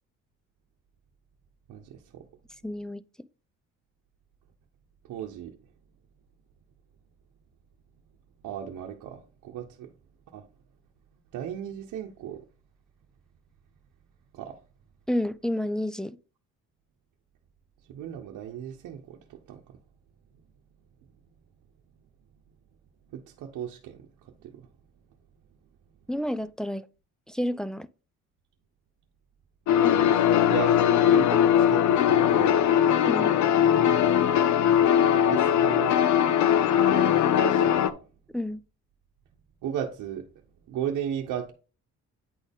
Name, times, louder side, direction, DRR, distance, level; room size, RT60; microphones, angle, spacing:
voice 1, 1.7-2.2 5.1-5.6 8.4-9.9 10.3-10.5 11.3-12.4 14.3-14.6 17.9-19.6 23.1-24.1 24.4-24.6 29.7-32.7 35.3-36.0 36.9-38.0 39.6-40.3 40.7-41.5, right 9 dB, 85° right, 0.9 m, -36 dB
voice 2, 2.6-3.0 15.1-16.2 26.1-26.9 27.3-27.9 33.0-33.3 38.3-38.6, left 1 dB, ahead, 0.3 m, -30 dB
sound 1, 29.7-37.9, left 9 dB, 70° left, 0.6 m, -20 dB
9.2 x 4.1 x 3.5 m
cardioid pair, 90°, 30 cm